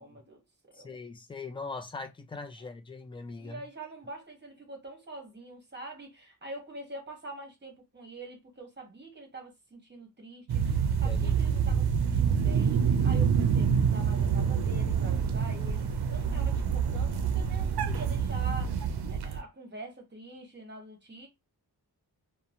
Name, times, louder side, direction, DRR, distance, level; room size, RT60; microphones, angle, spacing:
voice 1, 0.0-1.0 2.6-2.7 3.4-21.3, right 2 dB, 25° right, 1.0 m, -45 dB
voice 2, 0.8-3.6 11.0-11.4, left 3 dB, 15° left, 0.3 m, -41 dB
sound 1, 10.5-19.4, right 7 dB, 75° right, 0.5 m, -27 dB
2.9 x 2.1 x 2.5 m
wide cardioid pair, 145°, 40 cm